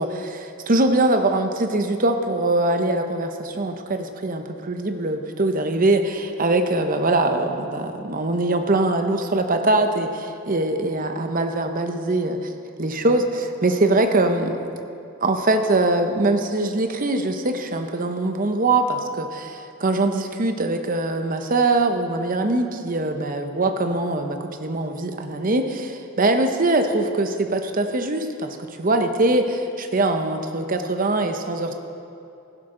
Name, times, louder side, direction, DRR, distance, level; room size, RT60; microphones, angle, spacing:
voice 1, 0.0-12.4 12.8-14.6 15.2-31.7, right 2 dB, 40° right, 6 dB, 0.8 m, -22 dB
16.0 x 11.5 x 3.8 m, 2.6 s
head